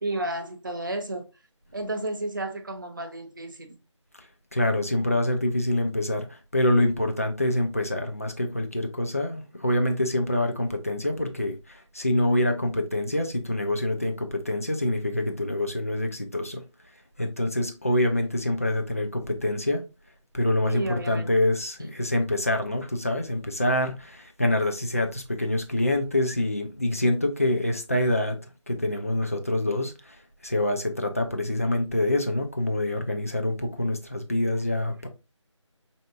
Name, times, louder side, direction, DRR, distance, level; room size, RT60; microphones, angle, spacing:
voice 1, 0.0-1.3 1.7-3.8 20.6-21.3, right 1 dB, 40° right, 0.6 m, -32 dB
voice 2, 4.5-16.6 17.2-19.8 20.3-28.4 28.7-30.2 30.4-35.1, left 1 dB, 30° left, 0.4 m, -26 dB
4.5 x 2.7 x 2.5 m
figure-of-eight pair, 165°, 16 cm